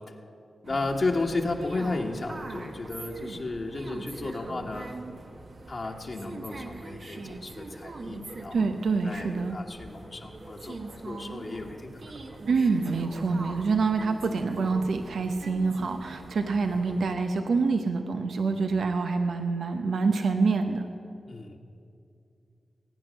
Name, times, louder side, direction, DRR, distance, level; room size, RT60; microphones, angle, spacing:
voice 1, 0.6-4.9 5.7-10.8 11.0-12.2 21.3-21.6, left 3 dB, 55° left, 0 dB, 1.5 m, -33 dB
sound 1, 0.6-17.2, right 2 dB, 65° right, 1.3 m, -42 dB
voice 2, 8.5-9.6 12.5-20.8, right 4 dB, 80° right, 6 dB, 0.8 m, -26 dB
21.0 x 9.3 x 6.4 m, 2.5 s
cardioid pair, 45°, 0 cm